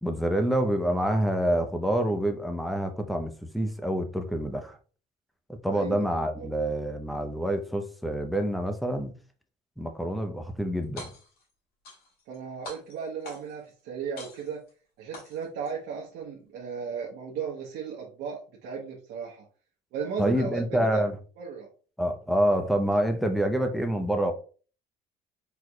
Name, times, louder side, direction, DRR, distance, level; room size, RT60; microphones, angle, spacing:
voice 1, 0.0-4.8 5.6-9.1 9.8-11.1 20.2-21.2 22.0-24.3, right 1 dB, ahead, 5 dB, 0.7 m, -27 dB
voice 2, 5.7-6.1 6.4-6.5 12.3-14.6 15.0-19.5 19.9-21.0 21.4-21.7, right 6 dB, 80° right, -3 dB, 1.0 m, -35 dB
sound 1, 10.8-11.4 11.8-12.4 12.6-13.7 14.2-14.7 15.1-15.7, left 2 dB, 65° left, 2.0 m, -44 dB
4.6 x 4.0 x 2.3 m, 0.39 s
cardioid pair, 110°, 17 cm